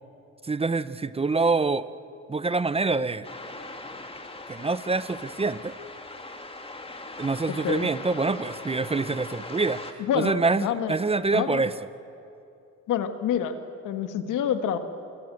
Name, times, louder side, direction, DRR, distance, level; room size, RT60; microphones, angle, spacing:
voice 1, 0.4-1.9 2.3-3.3 4.5-5.7 7.2-11.7, right 3 dB, 20° right, 15 dB, 0.7 m, -26 dB
sound 1, 3.2-9.9, left 2 dB, 20° left, 2.4 m, -40 dB
voice 2, 10.0-11.0 11.3-11.6 12.9-13.6 13.8-14.8, left 9 dB, 85° left, 8 dB, 1.7 m, -27 dB
27.5 x 21.5 x 7.8 m, 2.7 s
cardioid pair, 90°, 30 cm